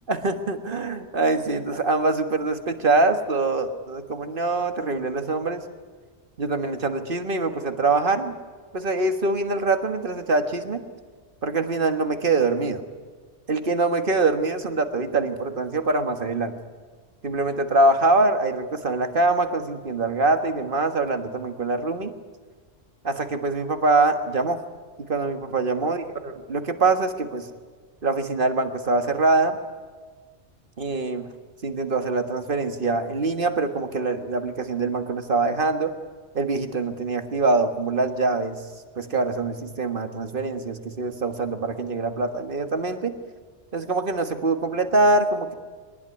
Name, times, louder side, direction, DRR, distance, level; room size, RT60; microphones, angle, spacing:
voice 1, 0.1-5.6 6.4-8.4 8.7-10.8 11.4-12.8 13.5-16.5 17.2-22.1 23.0-24.6 25.0-27.5 28.0-29.6 30.8-31.3 31.6-35.9 36.3-38.6 39.0-43.1 43.7-45.5, right 3 dB, 50° right, 7 dB, 1.8 m, -24 dB
22.5 x 19.5 x 9.8 m, 1.5 s
omnidirectional pair, 1.2 m